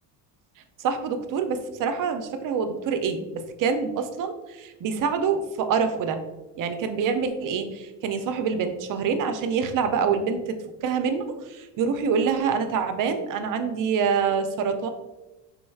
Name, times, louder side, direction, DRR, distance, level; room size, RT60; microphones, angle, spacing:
voice 1, 0.8-6.2 6.6-14.9, right 6 dB, 45° right, 8 dB, 0.5 m, -26 dB
3.7 x 3.1 x 2.3 m, 1.1 s
supercardioid pair, 75°, 49 cm